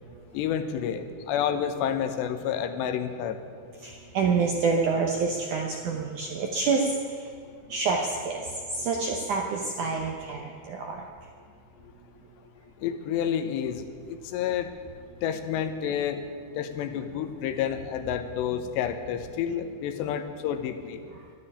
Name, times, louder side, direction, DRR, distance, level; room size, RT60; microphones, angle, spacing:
voice 1, 0.3-3.4 12.8-14.7 15.2-16.2 16.6-21.0, left 9 dB, 80° left, 8 dB, 3.1 m, -29 dB
voice 2, 3.8-6.9 7.7-8.5 8.7-11.0, right 4 dB, 75° right, 1 dB, 1.9 m, -27 dB
12.5 x 10.0 x 9.8 m, 2.2 s
omnidirectional pair, 5.0 m